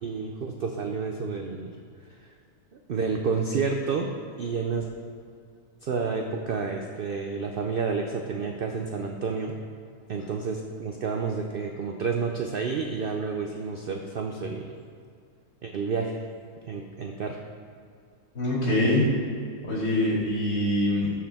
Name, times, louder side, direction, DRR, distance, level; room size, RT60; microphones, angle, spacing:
voice 1, 0.0-1.8 2.9-4.9 5.8-9.5 10.1-14.7 15.6-16.2 16.7-17.4, right 5 dB, 70° right, 2 dB, 0.5 m, -30 dB
voice 2, 18.3-19.1 19.6-21.1, left 1 dB, 80° left, -6 dB, 2.8 m, -24 dB
13.5 x 4.6 x 3.6 m, 2.3 s
omnidirectional pair, 1.6 m